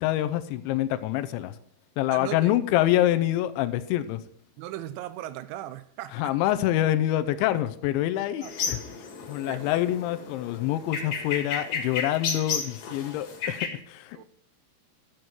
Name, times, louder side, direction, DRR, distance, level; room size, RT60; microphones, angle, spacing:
voice 1, 0.0-1.6 2.0-4.2 6.1-8.8 9.3-14.2, left 13 dB, 85° left, 3.0 m, -26 dB
voice 2, 2.1-2.5 4.6-6.4 8.4-8.5 9.5-9.8 14.1-14.2, right 13 dB, 85° right, 2.9 m, -38 dB
sound 1, 8.4-13.7, left 5 dB, 55° left, 2.4 m, -33 dB
12.5 x 7.9 x 4.4 m
omnidirectional pair, 5.4 m